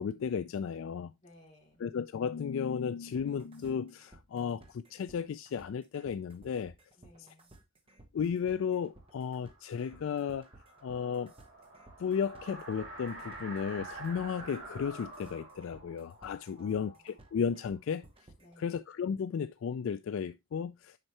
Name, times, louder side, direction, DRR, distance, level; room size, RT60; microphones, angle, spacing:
voice 1, 0.0-1.1 1.8-6.7 8.1-10.5 10.8-11.3 12.0-18.0 18.6-21.0, left 7 dB, 65° left, 0.3 m, -34 dB
voice 2, 1.2-1.8 7.0-7.5 16.6-17.2 18.4-18.8, left 1 dB, 30° left, 2.8 m, -59 dB
sound 1, 3.1-18.6, right 2 dB, 25° right, 1.2 m, -57 dB
sound 2, 9.0-17.8, right 2 dB, 60° right, 4.7 m, -48 dB
7.7 x 5.4 x 2.8 m
head